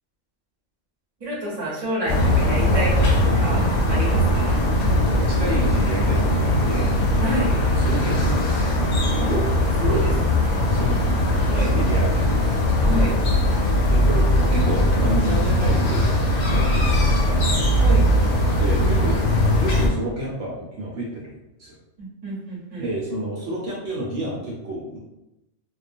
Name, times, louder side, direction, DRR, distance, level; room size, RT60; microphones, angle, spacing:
voice 1, 1.2-4.7 7.2-7.5 9.2-10.4 11.5-11.7 12.9-13.2 17.8-18.1 22.0-22.8, right 1 dB, 30° right, -6 dB, 0.7 m, -28 dB
sound 1, 2.1-19.9, left 1 dB, 65° left, 0.8 m, -20 dB
voice 2, 5.1-6.9 7.8-8.8 10.7-11.0 11.5-12.4 13.9-16.1 16.4-17.7 18.5-19.2 19.6-21.3 21.6-21.7 22.8-25.0, right 1 dB, 70° right, -4 dB, 0.9 m, -30 dB
2.3 x 2.2 x 2.5 m, 0.91 s
omnidirectional pair, 1.4 m